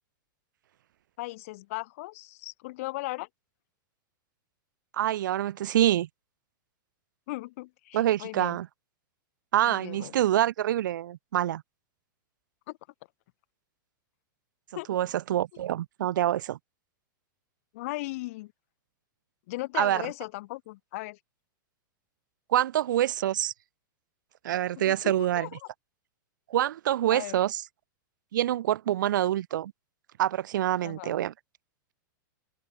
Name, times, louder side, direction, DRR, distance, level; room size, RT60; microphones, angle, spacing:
voice 1, 1.2-3.3 7.3-8.6 9.6-10.1 12.7-12.8 14.7-14.9 17.7-18.5 19.5-21.2 24.8-25.5 27.1-27.4 30.8-31.2, left 20 dB, 45° left, 7.5 m, -37 dB
voice 2, 4.9-6.1 7.9-8.7 9.5-11.6 14.9-16.6 19.7-20.0 22.5-23.5 24.4-25.5 26.5-27.6 28.3-29.7 30.2-31.3, right 12 dB, 70° right, 1.6 m, -26 dB
supercardioid pair, 170°, 11 cm